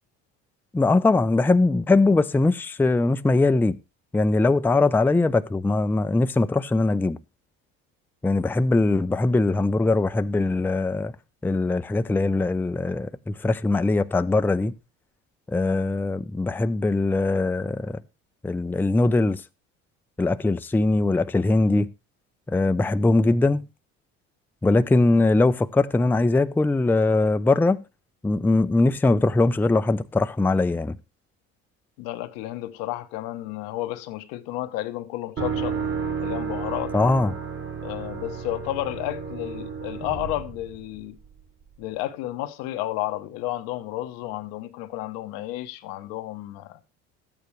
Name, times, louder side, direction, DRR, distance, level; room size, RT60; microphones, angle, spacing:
voice 1, 0.7-3.8 4.1-7.2 8.2-11.1 11.4-14.7 15.5-18.0 18.4-19.4 20.2-21.9 22.5-23.6 24.6-27.8 28.2-31.0 36.9-37.3, left 2 dB, 5° left, 0.5 m, -21 dB
voice 2, 32.0-35.8 36.2-36.9 37.8-41.2 41.8-46.8, left 15 dB, 75° left, 1.0 m, -32 dB
sound 1, 35.4-41.3, right 6 dB, 40° right, 1.8 m, -32 dB
13.0 x 8.9 x 3.2 m
hypercardioid pair, 75°, 34 cm